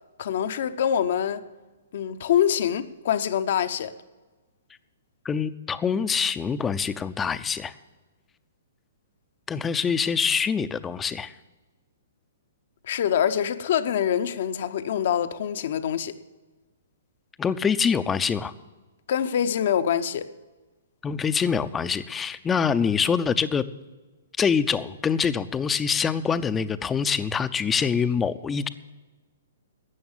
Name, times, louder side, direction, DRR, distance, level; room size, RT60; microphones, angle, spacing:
voice 1, 0.2-1.4 1.9-3.9 12.9-16.1 19.1-20.3, left 9 dB, 60° left, 0.8 m, -25 dB
voice 2, 5.2-7.7 9.5-11.3 17.4-18.5 21.0-23.6 24.4-28.7, left 6 dB, 15° left, 0.6 m, -25 dB
13.0 x 8.7 x 7.3 m
hypercardioid pair, 125°, 0 cm